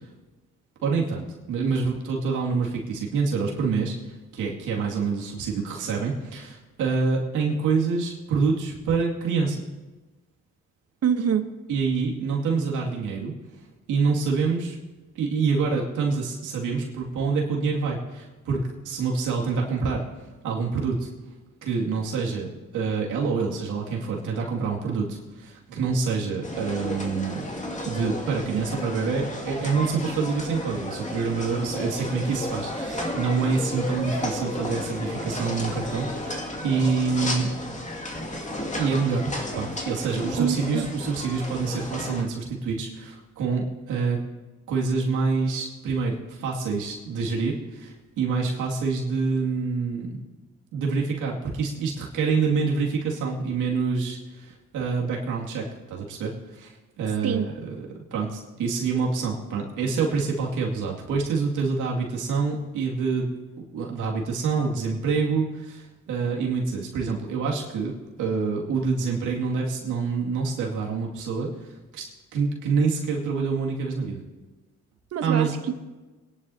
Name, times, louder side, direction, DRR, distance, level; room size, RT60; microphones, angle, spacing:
voice 1, 0.8-9.6 11.7-13.3 13.9-14.8 15.1-21.1 21.6-27.5 27.8-37.6 38.8-44.2 44.7-50.2 50.7-63.3 63.7-72.1 72.3-74.2 75.2-75.5, right 4 dB, 85° right, -2 dB, 2.4 m, -26 dB
voice 2, 11.0-11.5 40.4-40.9 57.2-57.5 75.1-75.7, right 8 dB, 55° right, 8 dB, 1.0 m, -25 dB
sound 1, 26.4-42.2, left 1 dB, 25° left, 2.2 m, -33 dB
23.0 x 11.0 x 2.8 m, 1.2 s
cardioid pair, 90°, 30 cm